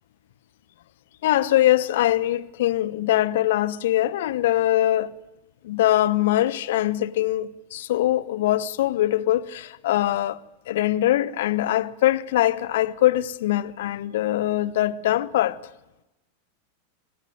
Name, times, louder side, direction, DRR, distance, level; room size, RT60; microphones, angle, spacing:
voice 1, 1.2-5.2 5.6-10.4 10.7-15.6, left 14 dB, 55° left, 0.9 m, -22 dB
25.0 x 20.5 x 9.3 m
figure-of-eight pair, 90°, 0 cm